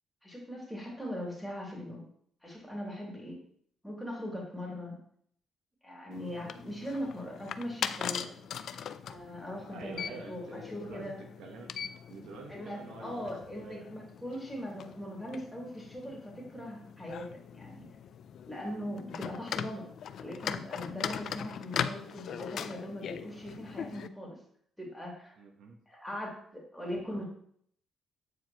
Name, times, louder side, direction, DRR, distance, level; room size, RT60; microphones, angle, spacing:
voice 1, 0.2-2.0 2.4-3.4 3.8-4.9 5.8-8.3 9.1-11.1 12.5-17.3 17.5-17.9 18.5-19.9 20.2-24.4 24.8-25.3 25.9-27.2, equal, ahead, -4 dB, 2.6 m, -40 dB
sound 1, 6.1-24.1, left 8 dB, 65° left, 0.3 m, -40 dB
voice 2, 9.7-11.7 12.1-13.9 14.3-14.4 25.4-25.8, right 4 dB, 80° right, 3 dB, 1.0 m, -48 dB
8.2 x 4.6 x 2.9 m, 0.64 s
cardioid pair, 90°, 0 cm